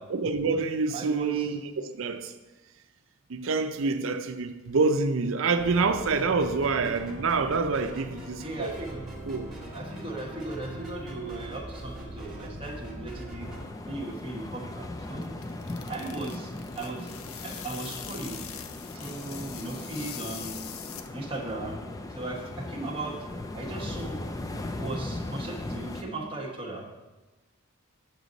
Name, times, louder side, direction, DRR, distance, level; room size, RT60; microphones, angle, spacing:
voice 1, 0.1-2.3 3.3-8.8 9.3-9.5, right 4 dB, 65° right, 0.5 m, -27 dB
voice 2, 0.9-1.5 8.4-9.0 9.7-13.5 13.8-15.4 15.9-17.1 17.4-18.4 18.9-20.6 21.1-21.8 22.1-23.2 23.5-24.2 24.6-26.9, right 2 dB, 25° right, 1.1 m, -37 dB
sound 1, 5.6-13.6, right 1 dB, ahead, 1.3 m, -41 dB
sound 2, 13.4-26.0, left 2 dB, 15° left, 0.3 m, -38 dB
sound 3, 15.1-21.4, left 9 dB, 75° left, 0.5 m, -43 dB
8.0 x 6.1 x 4.0 m
head